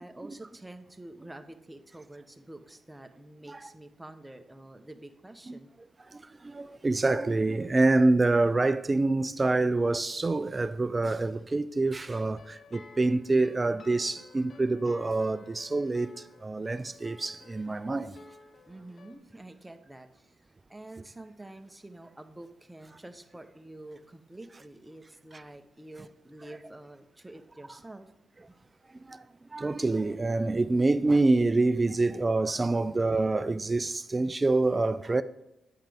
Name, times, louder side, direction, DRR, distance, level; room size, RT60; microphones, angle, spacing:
voice 1, 0.0-5.7 18.7-20.4 20.7-28.1 28.4-28.6 28.8-29.0, right 1 dB, 10° right, 0.8 m, -48 dB
voice 2, 6.1-18.2 29.0-29.2 29.5-35.2, right 2 dB, 30° right, 0.4 m, -26 dB
sound 1, 12.0-19.2, left 3 dB, 50° left, 0.8 m, -53 dB
8.6 x 5.8 x 3.4 m
cardioid pair, 65°, 0 cm